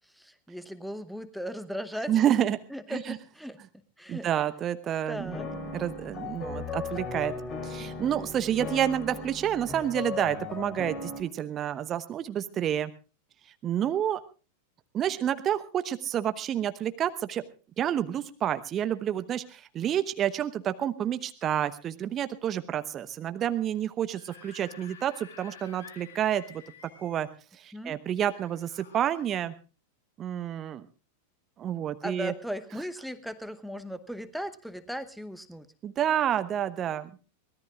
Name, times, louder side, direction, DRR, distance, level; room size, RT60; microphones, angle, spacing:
voice 1, 0.1-2.2 2.7-3.6 4.0-4.3 5.1-5.5 27.7-27.9 32.0-35.7, equal, ahead, 11 dB, 0.9 m, -37 dB
voice 2, 2.1-2.6 2.9-3.2 4.1-5.4 5.7-7.3 7.6-12.9 13.6-14.2 14.9-17.4 17.8-26.6 27.0-27.3 27.5-29.5 30.2-30.8 31.6-32.3 35.8-37.1, right 10 dB, 30° right, 12 dB, 0.9 m, -29 dB
sound 1, 5.2-11.2, left 4 dB, 25° left, 2.9 m, -37 dB
Screaming / Screech, 24.0-27.3 28.3-29.4, left 6 dB, 60° left, 2.1 m, -51 dB
23.5 x 18.0 x 2.4 m, 0.34 s
figure-of-eight pair, 90°, 0 cm